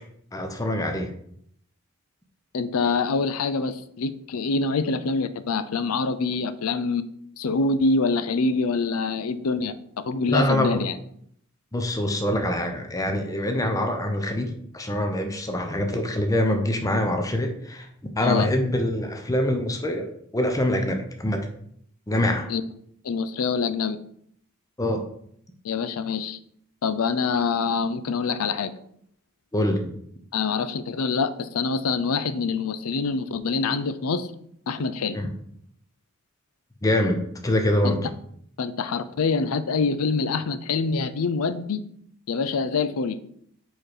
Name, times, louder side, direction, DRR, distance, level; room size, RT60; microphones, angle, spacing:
voice 1, 0.3-1.1 10.3-10.8 11.7-17.9 18.2-21.4 22.1-22.5 24.8-25.0 29.5-29.9 35.1-35.3 36.8-38.0, left 1 dB, 15° left, 5 dB, 0.7 m, -24 dB
voice 2, 2.5-7.0 7.4-11.0 18.2-18.5 22.5-22.6 23.0-24.0 25.6-26.4 26.8-28.7 30.3-34.3 34.7-35.2 37.8-38.0 38.6-41.8 42.3-43.2, left 4 dB, 80° left, 13 dB, 0.5 m, -25 dB
4.5 x 4.3 x 4.8 m, 0.68 s
head